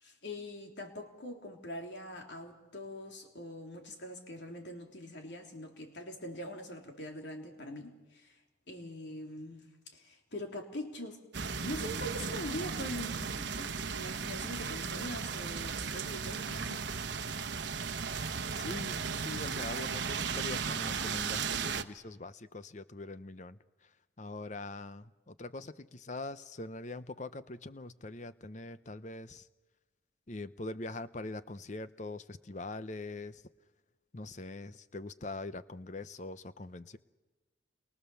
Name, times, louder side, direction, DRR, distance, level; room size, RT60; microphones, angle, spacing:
voice 1, 0.0-8.4 8.7-11.2 11.6-16.9, left 1 dB, 65° left, 2 dB, 3.3 m, -43 dB
sound 1, 11.3-21.8, right 5 dB, 65° right, 1.0 m, -36 dB
voice 2, 18.6-29.5 30.3-33.4 34.1-37.0, left 2 dB, 40° left, 13 dB, 0.7 m, -43 dB
29.5 x 23.0 x 7.0 m, 1.2 s
head